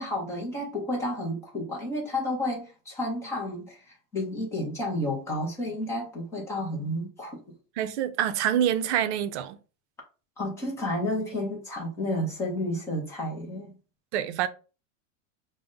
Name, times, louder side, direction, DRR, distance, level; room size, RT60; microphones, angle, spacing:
voice 1, 0.0-7.4 10.4-13.7, left 1 dB, 5° left, 0.4 m, -31 dB
voice 2, 7.8-9.6 14.1-14.5, right 10 dB, 60° right, 0.6 m, -26 dB
4.9 x 2.1 x 3.6 m
supercardioid pair, 175°, 39 cm